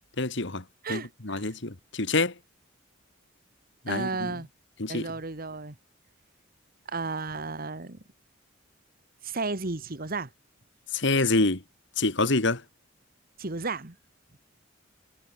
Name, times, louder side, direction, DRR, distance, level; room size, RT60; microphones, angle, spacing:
voice 1, 0.2-0.6 0.9-2.3 3.9-4.3 4.8-5.1 10.9-11.6 12.0-12.6, left 3 dB, 60° left, 2.3 m, -26 dB
voice 2, 0.8-1.5 3.9-4.5 4.9-5.8 6.9-8.0 9.2-10.3 13.4-13.9, right 3 dB, 45° right, 1.7 m, -33 dB
head